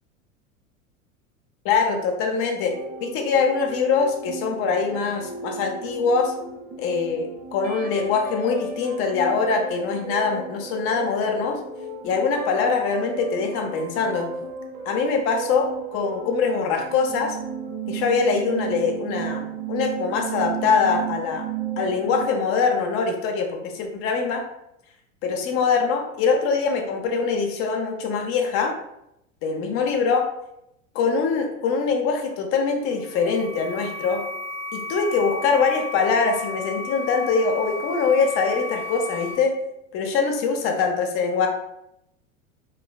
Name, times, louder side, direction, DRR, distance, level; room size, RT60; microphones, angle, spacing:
voice 1, 1.6-2.7 3.0-6.3 6.8-11.6 12.0-14.3 14.9-17.4 17.9-21.5 21.8-24.4 25.2-28.7 29.4-30.2 30.9-34.2 34.7-39.5 39.9-41.5, left 5 dB, 35° left, 3 dB, 0.5 m, -23 dB
sound 1, 2.7-22.3, right 6 dB, 25° right, 0.4 m, -34 dB
sound 2, 32.8-39.3, left 3 dB, 5° left, 0.7 m, -34 dB
3.1 x 2.2 x 2.2 m, 0.82 s
hypercardioid pair, 85°, 40 cm